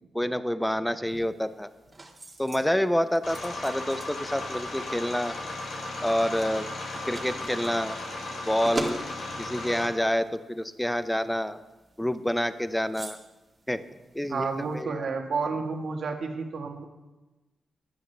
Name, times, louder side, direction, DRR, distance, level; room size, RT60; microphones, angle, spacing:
voice 1, 0.1-1.7 2.4-5.4 6.0-6.7 7.1-8.0 8.4-9.0 9.4-11.6 12.0-13.2 13.7-13.8 14.1-15.1, equal, 5° left, 12 dB, 0.6 m, -28 dB
sound 1, 1.1-14.8, right 2 dB, 30° right, 1.8 m, -44 dB
sound 2, 3.2-9.9, left 2 dB, 75° left, 3.8 m, -36 dB
voice 2, 14.3-16.8, right 4 dB, 65° right, 3 dB, 1.5 m, -31 dB
15.0 x 11.5 x 3.3 m, 1.1 s
cardioid pair, 95°, 0 cm